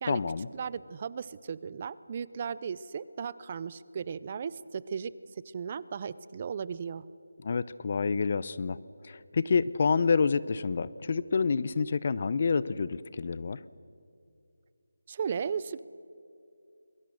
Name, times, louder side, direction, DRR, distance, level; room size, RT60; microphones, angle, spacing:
voice 1, 0.1-0.5 7.4-8.8 9.0-13.6, left 5 dB, 40° left, 18 dB, 0.6 m, -28 dB
voice 2, 0.6-5.1 5.5-7.0 15.1-15.8, right 6 dB, 30° right, 18 dB, 0.5 m, -36 dB
27.5 x 21.5 x 6.5 m, 2.5 s
figure-of-eight pair, 170°, 0 cm